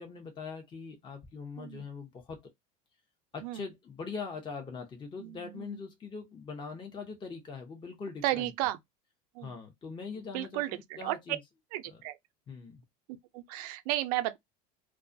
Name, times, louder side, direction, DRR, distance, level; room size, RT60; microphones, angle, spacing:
voice 1, 0.0-2.5 3.3-8.5 9.4-11.4 11.9-12.0 12.5-12.8, left 5 dB, 25° left, 0.7 m, -42 dB
voice 2, 5.2-5.8 8.2-8.8 9.3-9.5 10.3-11.2 11.7-12.2 13.3-14.4, right 15 dB, 75° right, 0.5 m, -33 dB
2.3 x 2.1 x 2.5 m
supercardioid pair, 95°, 19 cm